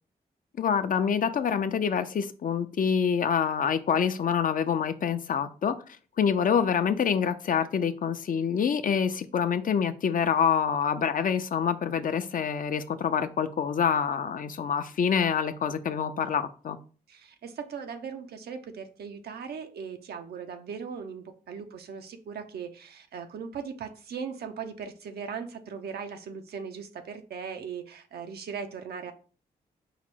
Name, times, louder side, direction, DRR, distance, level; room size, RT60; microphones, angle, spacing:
voice 1, 0.6-5.7 6.2-16.8, left 7 dB, 60° left, 0.5 m, -26 dB
voice 2, 17.1-29.1, right 6 dB, 85° right, 0.6 m, -39 dB
4.8 x 2.0 x 4.4 m
cardioid pair, 75°, 16 cm